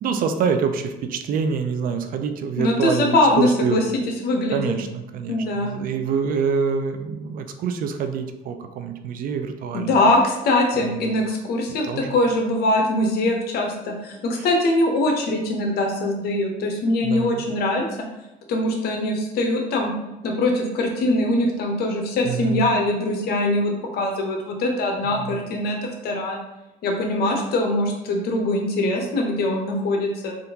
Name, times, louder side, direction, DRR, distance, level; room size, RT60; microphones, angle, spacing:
voice 1, 0.0-3.8 4.5-10.0 10.8-11.1 11.8-12.2 14.4-14.5 17.0-17.4 22.2-22.7 25.0-25.4, right 6 dB, 55° right, 8 dB, 0.4 m, -26 dB
voice 2, 2.6-4.7 5.3-5.8 9.7-17.8 18.5-19.9 20.2-26.4 26.8-30.4, left 1 dB, 70° left, 2 dB, 0.8 m, -22 dB
3.6 x 2.5 x 2.8 m, 0.96 s
cardioid pair, 110°, 17 cm